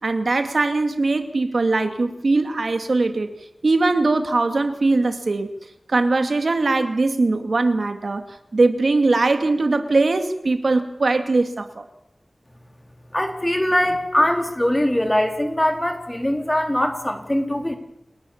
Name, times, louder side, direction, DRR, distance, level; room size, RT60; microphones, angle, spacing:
voice 1, 0.0-3.3 3.6-5.6 5.9-11.8, right 3 dB, 70° right, 8 dB, 2.2 m, -21 dB
voice 2, 13.1-17.8, left 1 dB, 15° left, 5 dB, 4.0 m, -21 dB
29.5 x 18.0 x 7.3 m, 0.79 s
wide cardioid pair, 70°, 0 cm